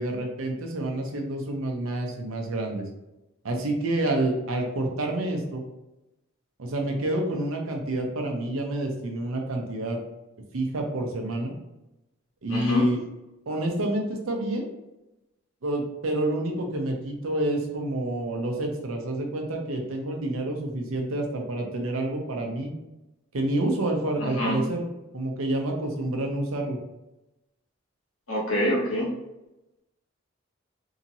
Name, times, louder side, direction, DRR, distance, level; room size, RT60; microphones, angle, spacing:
voice 1, 0.0-2.9 3.4-5.6 6.6-10.0 10.5-11.5 12.4-13.0 13.5-14.7 15.6-22.7 23.3-24.8 25.1-26.8, right 1 dB, 85° right, 2 dB, 0.6 m, -28 dB
voice 2, 12.5-12.8 24.2-24.6 28.3-29.1, left 1 dB, 85° left, -4 dB, 1.1 m, -26 dB
2.8 x 2.7 x 2.6 m, 0.96 s
head